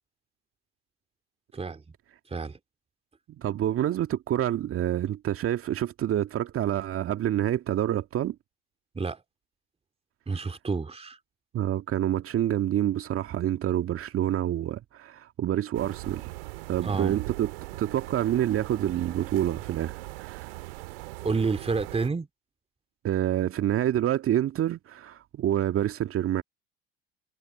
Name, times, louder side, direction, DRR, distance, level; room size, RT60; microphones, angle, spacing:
voice 1, 1.5-1.8 2.3-2.6 8.9-9.2 10.3-11.2 16.8-17.2 21.2-22.3, right 4 dB, 20° right, 2.7 m, -29 dB
voice 2, 3.4-8.4 11.5-16.3 16.7-17.5 17.8-20.5 23.0-26.4, right 12 dB, 45° right, 2.2 m, -27 dB
sound 1, 15.7-22.1, right 23 dB, 70° right, 1.9 m, -40 dB
figure-of-eight pair, 60°, 31 cm